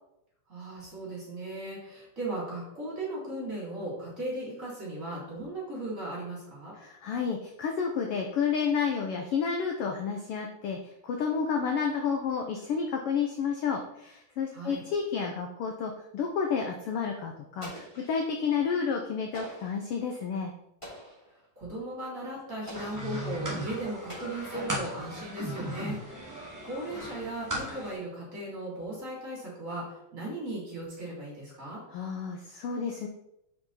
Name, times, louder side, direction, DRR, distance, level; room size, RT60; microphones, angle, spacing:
voice 1, 0.5-6.7 14.5-14.8 21.3-31.8, right 1 dB, 25° right, -5 dB, 3.3 m, -37 dB
voice 2, 6.8-20.5 31.9-33.1, left 6 dB, 75° left, 2 dB, 1.3 m, -30 dB
Explosion, 17.6-18.5 19.3-19.9 20.8-21.3 22.7-23.2 24.1-25.0, equal, 10° left, 2.9 m, -45 dB
sound 1, 22.7-27.9, equal, 10° right, 1.4 m, -37 dB
6.7 x 5.9 x 4.1 m, 0.81 s
omnidirectional pair, 3.4 m